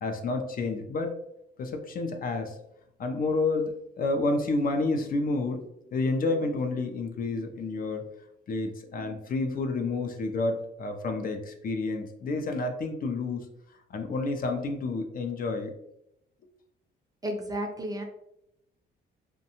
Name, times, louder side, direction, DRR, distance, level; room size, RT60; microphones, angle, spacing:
voice 1, 0.0-1.1 1.6-2.5 3.0-5.6 5.9-8.0 8.5-13.5 13.9-15.7, left 3 dB, 45° left, 5 dB, 0.4 m, -29 dB
voice 2, 17.2-18.0, equal, 20° right, 3 dB, 0.4 m, -32 dB
2.6 x 2.2 x 2.8 m, 0.79 s
cardioid pair, 90°, 20 cm